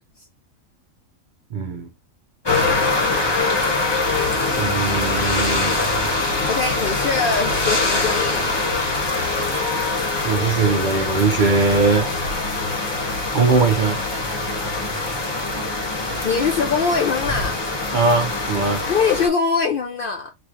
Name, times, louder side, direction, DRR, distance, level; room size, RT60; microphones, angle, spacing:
voice 1, 1.5-1.9 4.6-5.8 10.2-12.2 13.3-14.0 17.9-18.9, right 4 dB, 75° right, 0.4 m, -20 dB
sound 1, 2.5-19.3, left 3 dB, 25° left, 0.8 m, -23 dB
voice 2, 6.5-8.6 16.2-17.6 18.9-20.3, left 5 dB, 60° left, 0.5 m, -22 dB
4.0 x 3.1 x 2.5 m
omnidirectional pair, 1.4 m